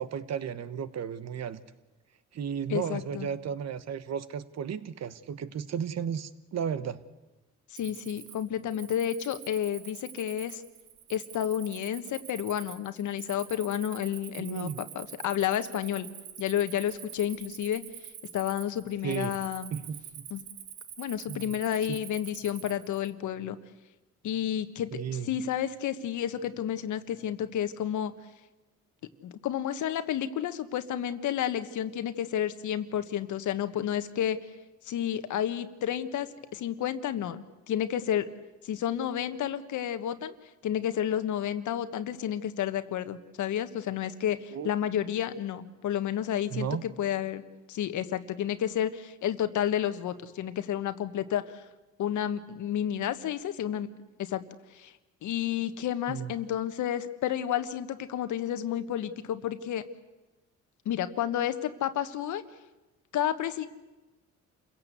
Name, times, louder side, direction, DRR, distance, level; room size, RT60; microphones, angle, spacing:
voice 1, 0.0-1.6 2.3-7.0 14.4-14.8 19.0-19.4 19.7-20.3 21.3-21.5 24.9-25.3 44.5-44.7 46.5-46.8 56.1-56.3, right 8 dB, 60° right, 14 dB, 1.3 m, -34 dB
voice 2, 2.7-3.3 7.7-10.6 11.1-16.1 16.4-17.8 18.3-19.7 20.3-20.4 21.0-23.6 24.2-28.1 29.2-34.4 34.8-38.2 38.6-40.3 40.6-47.4 47.7-51.6 52.0-53.9 54.2-54.4 54.7-54.9 55.2-59.8 60.8-62.4 63.1-63.7, left 10 dB, 75° left, 10 dB, 1.4 m, -31 dB
Cricket, 7.7-23.1, right 10 dB, 85° right, 1.7 m, -46 dB
28.5 x 16.5 x 8.2 m, 1.1 s
cardioid pair, 90°, 30 cm